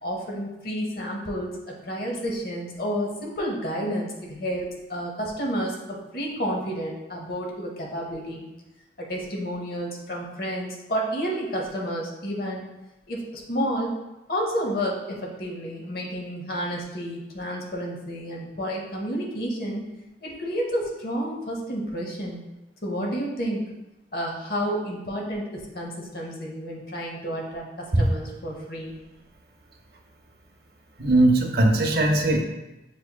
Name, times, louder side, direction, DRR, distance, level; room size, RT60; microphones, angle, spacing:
voice 1, 0.0-5.7 6.1-8.4 9.0-12.6 13.1-13.9 14.3-19.9 20.2-22.4 22.8-23.6 24.1-27.7 27.9-28.9, equal, 55° left, -1 dB, 0.8 m, -30 dB
voice 2, 31.0-32.4, right 1 dB, 55° right, 2 dB, 0.6 m, -19 dB
6.8 x 2.9 x 2.2 m, 1.0 s
head